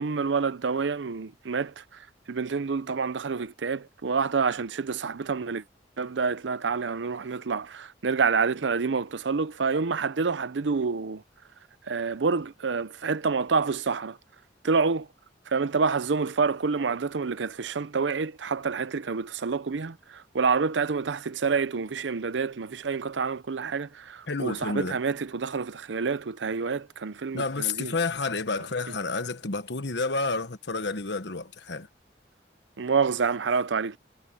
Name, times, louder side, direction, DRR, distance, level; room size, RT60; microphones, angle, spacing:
voice 1, 0.0-1.8 2.3-5.6 6.0-11.2 11.9-14.2 14.6-15.1 15.5-27.9 32.8-34.0, right 5 dB, 85° right, 0.6 m, -28 dB
voice 2, 24.3-25.0 27.3-31.9, left 3 dB, 70° left, 1.3 m, -30 dB
head